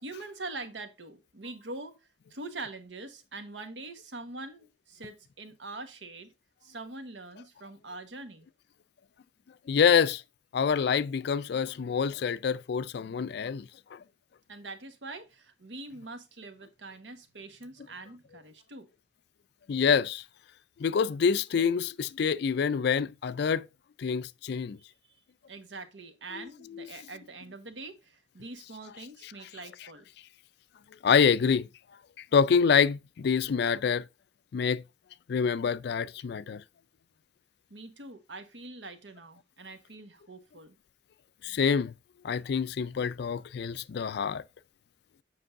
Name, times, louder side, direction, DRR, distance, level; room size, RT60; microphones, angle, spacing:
voice 1, 0.0-6.3 6.6-8.5 14.5-18.9 25.5-30.0 37.7-40.7, right 2 dB, 80° right, 1.3 m, -43 dB
voice 2, 9.7-10.2 10.5-14.0 19.7-20.2 20.8-23.7 24.0-24.8 26.8-26.9 31.0-31.7 32.3-34.0 34.5-34.8 35.3-36.6 41.4-41.9 42.2-44.4, left 6 dB, 65° left, 0.4 m, -26 dB
7.7 x 5.3 x 2.6 m
head